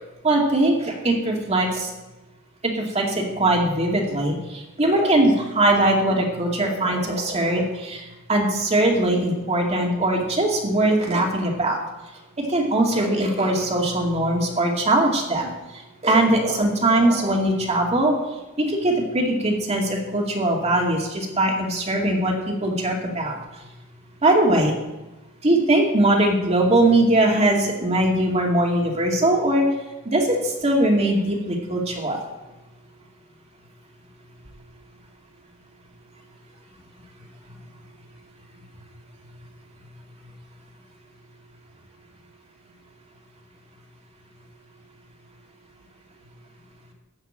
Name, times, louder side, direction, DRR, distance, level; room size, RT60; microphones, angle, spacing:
voice 1, 0.2-1.9 2.6-8.0 8.3-11.8 12.4-15.5 16.0-18.1 18.6-23.3 24.2-24.7 25.4-29.6 30.1-32.2, right 1 dB, 30° right, 0 dB, 2.3 m, -21 dB
14.5 x 6.5 x 8.9 m, 1.1 s
head